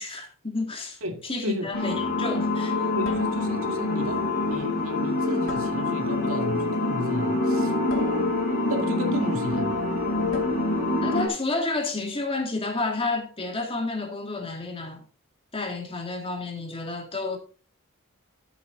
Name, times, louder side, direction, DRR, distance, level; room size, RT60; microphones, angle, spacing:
voice 1, 0.0-2.9 11.0-15.0 15.5-17.4, left 3 dB, 25° left, 2.2 m, -30 dB
voice 2, 1.0-1.7 3.0-7.7 8.7-9.8, equal, 80° right, 1.9 m, -33 dB
sound 1, 1.2-1.6 3.0-3.8 5.5-6.3 7.9-8.8 10.3-10.9, left 2 dB, 70° left, 3.3 m, -40 dB
sound 2, 1.7-11.3, left 2 dB, 45° left, 4.5 m, -26 dB
13.0 x 6.9 x 3.8 m
head